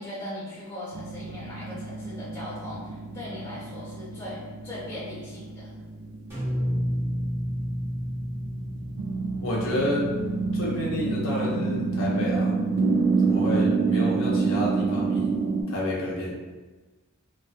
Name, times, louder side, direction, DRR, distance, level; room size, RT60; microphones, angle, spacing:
voice 1, 0.0-5.7, left 1 dB, 15° left, -9 dB, 1.1 m, -39 dB
sound 1, 0.9-15.6, right 4 dB, 70° right, 0.3 m, -28 dB
sound 2, 6.3-10.5, equal, 10° right, 0.9 m, -31 dB
voice 2, 9.4-10.1 10.5-12.5 13.2-15.3 15.7-16.3, left 1 dB, 60° left, -5 dB, 0.7 m, -29 dB
2.5 x 2.2 x 2.3 m, 1.3 s
head